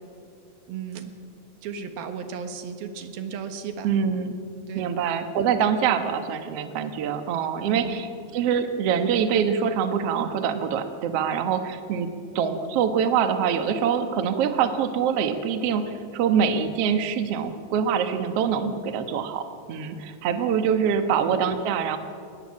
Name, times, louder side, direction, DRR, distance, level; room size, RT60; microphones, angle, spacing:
voice 1, 0.7-1.1 1.6-3.9 4.7-4.9 7.6-8.0 20.7-21.0, right 7 dB, 85° right, 7 dB, 3.4 m, -35 dB
voice 2, 3.8-4.3 4.7-12.1 12.3-22.0, right 7 dB, 60° right, 8 dB, 1.8 m, -24 dB
24.5 x 20.0 x 7.6 m, 2.4 s
omnidirectional pair, 4.1 m